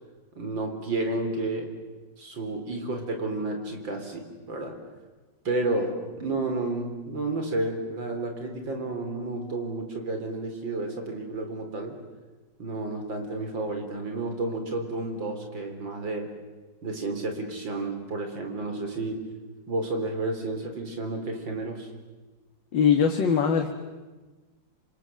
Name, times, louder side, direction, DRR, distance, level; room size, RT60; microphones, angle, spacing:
voice 1, 0.4-1.7 2.2-4.8 5.4-12.0 12.6-16.3 16.8-19.2 19.7-21.9, right 2 dB, 90° right, 5 dB, 4.6 m, -31 dB
voice 2, 22.7-23.7, left 7 dB, 80° left, 4 dB, 2.4 m, -21 dB
28.0 x 26.5 x 7.7 m, 1.3 s
omnidirectional pair, 2.0 m